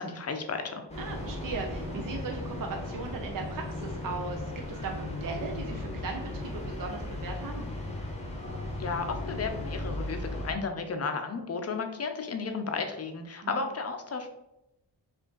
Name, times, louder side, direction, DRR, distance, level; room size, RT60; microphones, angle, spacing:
voice 1, 0.0-0.8 8.8-14.3, left 4 dB, 35° left, 5 dB, 0.5 m, -33 dB
sound 1, 0.9-10.5, left 1 dB, 15° left, 0.9 m, -36 dB
voice 2, 1.0-7.7 13.4-13.6, right 4 dB, 50° right, 2 dB, 0.5 m, -38 dB
5.0 x 2.5 x 3.8 m, 0.89 s
wide cardioid pair, 175°, 43 cm